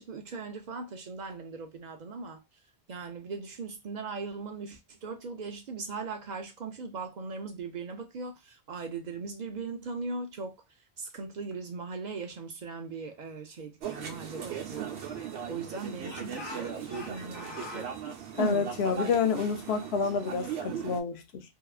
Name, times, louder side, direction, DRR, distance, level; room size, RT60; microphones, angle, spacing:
voice 1, 0.0-2.4 2.9-10.6 11.0-17.9 18.4-18.6, right 4 dB, 55° right, 0.5 m, -39 dB
sound 1, 13.8-21.0, right 8 dB, 80° right, 0.9 m, -38 dB
Speech / Shout, 14.0-15.6 16.0-17.9, left 3 dB, 25° left, 0.8 m, -45 dB
voice 2, 18.4-21.4, left 5 dB, 80° left, 0.8 m, -29 dB
2.8 x 2.3 x 2.3 m
omnidirectional pair, 1.1 m